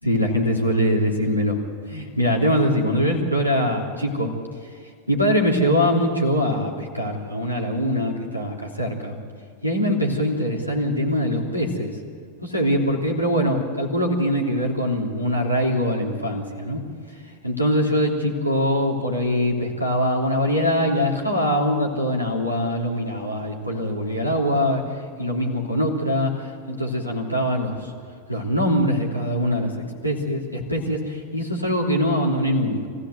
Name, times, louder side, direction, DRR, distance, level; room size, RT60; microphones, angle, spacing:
voice 1, 0.0-1.6 1.9-4.3 5.1-9.2 9.6-11.9 12.4-16.8 17.4-24.8 25.2-27.9 28.3-29.7 30.0-32.8, equal, 90° left, -1 dB, 3.2 m, -23 dB
25.5 x 15.5 x 8.0 m, 2.1 s
figure-of-eight pair, 90°, 0 cm